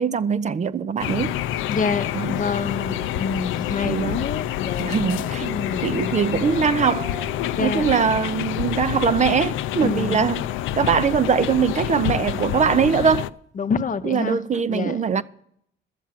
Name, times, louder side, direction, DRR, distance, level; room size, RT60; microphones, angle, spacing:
voice 1, 0.0-1.3 2.1-2.3 3.8-4.3 4.8-5.5 5.8-7.1 7.6-10.5 10.8-13.3 14.0-15.2, right 6 dB, 35° right, 0.5 m, -22 dB
sound 1, 1.0-13.3, left 12 dB, 85° left, 0.4 m, -27 dB
sound 2, 1.1-1.2 2.5-3.4 4.9-7.7 14.1-14.2, right 5 dB, 80° right, 1.6 m, -40 dB
voice 2, 1.7-5.0 5.5-6.1 7.5-8.0 9.8-10.2 13.6-14.4 14.7-15.2, left 5 dB, 40° left, 0.8 m, -27 dB
11.5 x 7.4 x 7.3 m
cardioid pair, 90°, 20 cm